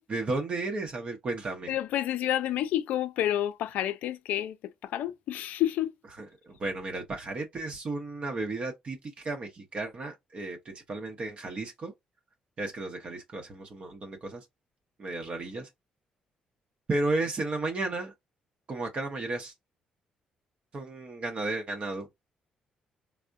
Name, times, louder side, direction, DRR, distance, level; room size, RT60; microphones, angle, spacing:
voice 1, 0.1-1.7 6.2-11.9 12.6-14.4 15.0-15.7 16.9-18.1 18.7-19.5 20.7-22.1, right 2 dB, 45° right, 0.7 m, -33 dB
voice 2, 1.7-5.9, left 12 dB, 80° left, 0.3 m, -29 dB
3.5 x 2.0 x 2.5 m
cardioid pair, 75°, 3 cm